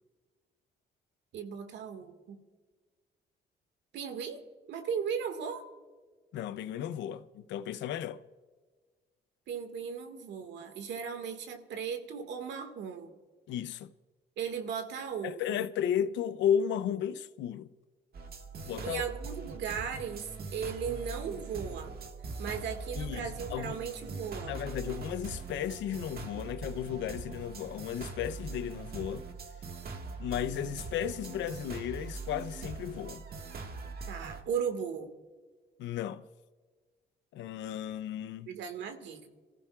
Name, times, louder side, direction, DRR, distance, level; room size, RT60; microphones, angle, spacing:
voice 1, 1.3-2.4 3.9-4.4 4.7-5.6 9.5-13.2 14.4-15.6 18.8-22.0 22.4-24.5 34.1-35.1 38.5-39.3, right 7 dB, 85° right, 1.9 m, -37 dB
voice 2, 6.3-8.2 13.5-13.9 15.2-17.7 18.6-19.0 23.0-23.2 23.5-23.8 24.4-29.2 30.2-33.3 35.8-36.2 37.3-38.5, left 9 dB, 90° left, 0.7 m, -34 dB
sound 1, 18.1-34.4, right 4 dB, 55° right, 1.7 m, -42 dB
28.0 x 15.0 x 2.4 m
cardioid pair, 75°, 18 cm